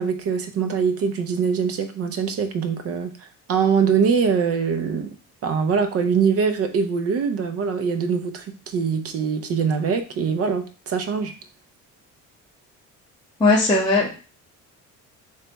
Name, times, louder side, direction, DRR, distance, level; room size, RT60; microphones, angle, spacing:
voice 1, 0.0-3.1 3.5-5.1 5.4-11.3, right 6 dB, 45° right, 7 dB, 0.6 m, -23 dB
voice 2, 13.4-14.1, left 2 dB, 15° left, -6 dB, 0.9 m, -17 dB
3.4 x 3.3 x 4.0 m, 0.35 s
cardioid pair, 155°, 33 cm